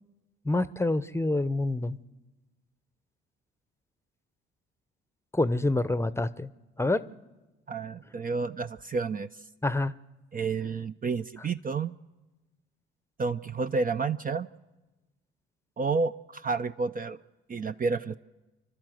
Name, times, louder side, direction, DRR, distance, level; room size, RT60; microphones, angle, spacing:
voice 1, 0.4-2.0 5.3-6.5 6.8-7.0 9.6-9.9, left 2 dB, 10° left, 0.8 m, -27 dB
voice 2, 7.7-9.3 10.3-11.9 13.2-14.5 15.8-17.2 17.5-18.2, right 4 dB, 30° right, 0.6 m, -30 dB
29.0 x 12.0 x 7.8 m
hypercardioid pair, 50°, 30 cm